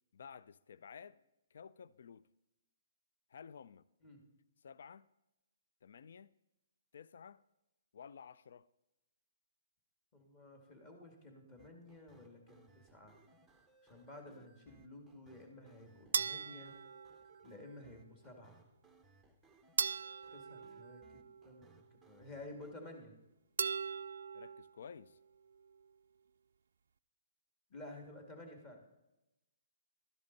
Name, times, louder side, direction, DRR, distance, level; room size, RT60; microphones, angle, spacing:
voice 1, 0.1-1.2 1.5-2.3 3.3-3.8 4.6-5.1 5.8-6.3 6.9-7.4 7.9-8.7 24.3-25.2, left 7 dB, 65° left, 0.3 m, -53 dB
voice 2, 10.1-13.2 13.8-16.7 17.4-18.6 20.3-23.1 27.7-28.8, left 2 dB, 25° left, 2.0 m, -53 dB
sound 1, 11.6-22.7, right 2 dB, ahead, 0.7 m, -67 dB
sound 2, 16.1-17.6 19.8-21.6 23.6-24.7, right 6 dB, 70° right, 0.3 m, -39 dB
12.0 x 10.5 x 4.0 m
hypercardioid pair, 160°, 0 cm